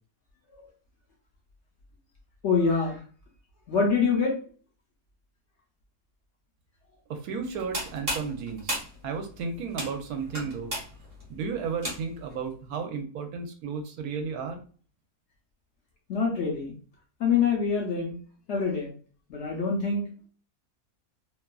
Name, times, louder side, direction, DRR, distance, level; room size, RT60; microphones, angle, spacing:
voice 1, 2.4-3.0 3.7-4.3 16.1-16.7 17.2-18.1 18.5-18.9 19.3-20.0, left 5 dB, 60° left, -1 dB, 0.8 m, -25 dB
voice 2, 7.1-10.8 11.3-14.6, right 5 dB, 75° right, 5 dB, 1.0 m, -33 dB
sound 1, 7.5-12.3, right 1 dB, 35° right, 1.0 m, -35 dB
2.9 x 2.3 x 2.2 m, 0.40 s
omnidirectional pair, 1.6 m